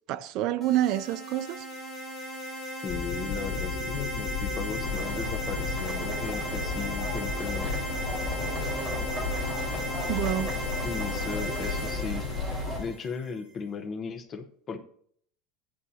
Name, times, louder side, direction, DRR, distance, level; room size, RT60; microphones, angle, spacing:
voice 1, 0.1-1.6 10.1-10.5, right 13 dB, 45° right, 0.4 m, -27 dB
sound 1, 0.6-13.3, equal, ahead, 3.3 m, -36 dB
voice 2, 2.8-7.7 10.8-12.3 12.8-14.8, left 5 dB, 25° left, 0.9 m, -36 dB
sound 2, 2.9-12.9, left 5 dB, 65° left, 2.6 m, -34 dB
sound 3, 4.8-12.8, right 2 dB, 15° right, 3.8 m, -37 dB
15.0 x 11.0 x 2.8 m
cardioid pair, 170°, 0 cm